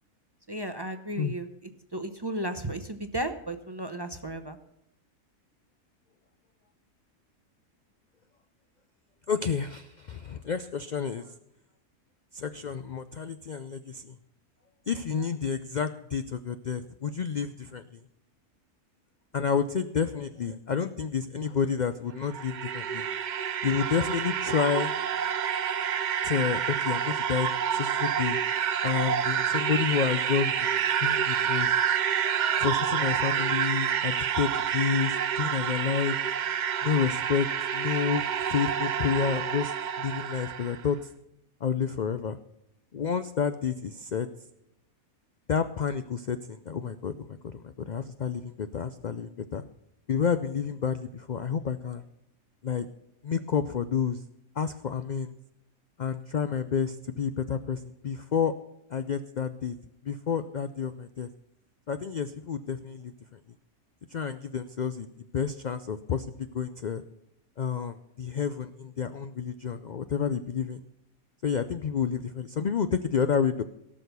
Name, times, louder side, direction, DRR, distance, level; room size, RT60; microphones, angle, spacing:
voice 1, 0.5-1.5 1.9-4.6, right 1 dB, 25° right, 8 dB, 0.6 m, -34 dB
voice 2, 9.3-11.3 12.3-14.1 14.9-18.0 19.3-23.1 23.6-24.9 26.2-28.4 28.8-31.7 32.2-36.2 36.8-41.0 41.6-42.4 42.9-44.3 45.5-49.6 50.1-52.0 52.6-52.9 53.2-54.2 54.6-55.4 56.0-58.5 58.9-59.8 60.0-61.3 61.9-63.4 64.1-65.1 65.3-67.0 67.6-70.8 71.4-73.6, left 6 dB, 75° left, 11 dB, 0.4 m, -30 dB
sound 1, 22.1-40.8, right 8 dB, 70° right, 0.4 m, -28 dB
17.5 x 6.4 x 6.8 m, 0.83 s
omnidirectional pair, 1.5 m